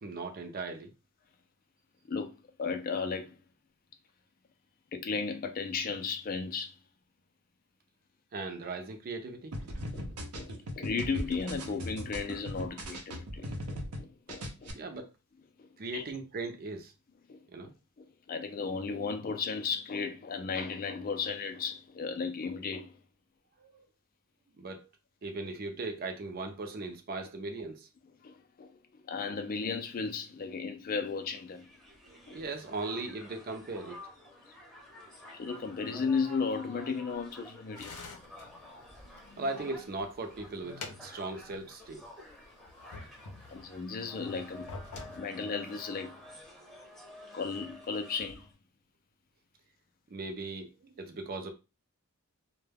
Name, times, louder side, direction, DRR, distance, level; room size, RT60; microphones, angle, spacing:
voice 1, 0.0-0.9 8.3-9.5 14.7-15.1 15.8-16.9 17.5-17.7 23.6-23.7 24.6-24.9 25.2-27.9 32.3-34.0 39.4-42.0 50.1-51.5, right 3 dB, 40° right, 0.4 m, -38 dB
voice 2, 2.1-3.4 4.9-6.8 9.9-14.8 15.6-15.7 15.9-16.0 17.3-17.7 18.0-23.0 28.2-31.7 32.3-32.4 35.3-38.0 43.5-44.7 45.1-46.2 47.3-48.5, left 5 dB, 40° left, 0.3 m, -35 dB
sound 1, 9.5-14.0 14.3-14.7, equal, 85° right, 0.6 m, -39 dB
Crowd, 31.1-48.5, left 1 dB, ahead, 0.7 m, -51 dB
sound 2, 37.8-39.9 40.3-41.7 42.0-42.1 42.6-43.8 44.4-45.2, left 3 dB, 85° left, 0.6 m, -47 dB
2.2 x 2.1 x 3.3 m
head